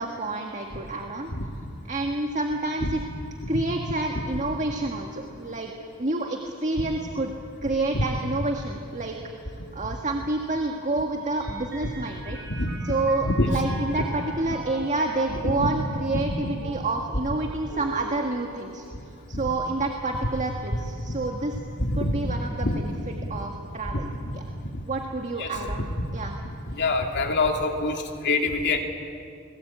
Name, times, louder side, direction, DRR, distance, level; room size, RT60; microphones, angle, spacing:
voice 1, 0.0-1.3 1.9-3.0 3.5-5.7 6.0-7.3 7.6-9.2 9.7-12.4 12.8-18.9 19.3-21.5 22.0-22.9 23.3-24.1 24.3-24.4 24.9-26.4, right 2 dB, 35° right, 2 dB, 1.8 m, -28 dB
Mallet percussion, 11.4-19.1, right 3 dB, 55° right, 4.8 m, -42 dB
voice 2, 12.3-12.7 13.2-13.5 15.6-15.7 16.3-16.6 19.3-19.4 21.8-22.2 22.6-22.8 23.2-23.3 23.9-24.3 25.4-25.5 25.9-26.0 26.7-28.8, left 2 dB, 55° left, 3 dB, 2.8 m, -26 dB
29.5 x 21.0 x 8.9 m, 2.6 s
head